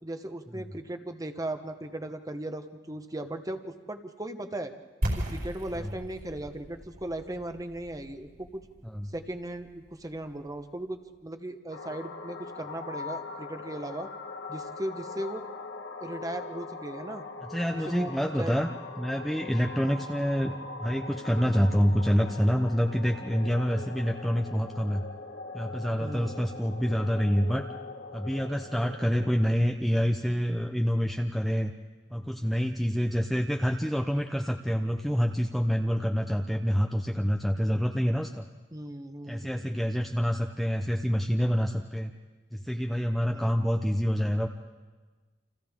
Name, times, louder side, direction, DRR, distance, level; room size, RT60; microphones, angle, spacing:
voice 1, 0.0-4.7 5.2-8.6 9.1-14.1 14.5-15.4 16.0-17.2 17.7-18.1 18.4-18.6 26.0-26.4 38.7-39.8 43.3-43.6, right 1 dB, 20° right, 7 dB, 1.1 m, -37 dB
sound 1, 5.0-10.8, equal, 60° right, 5.0 m, -37 dB
sound 2, 11.7-29.5, left 3 dB, 85° left, 1.4 m, -41 dB
voice 2, 17.4-25.0 25.5-27.7 28.1-31.7 32.1-38.4 39.3-42.1 42.5-44.5, equal, ahead, 3 dB, 0.7 m, -27 dB
30.0 x 27.0 x 3.7 m, 1.3 s
head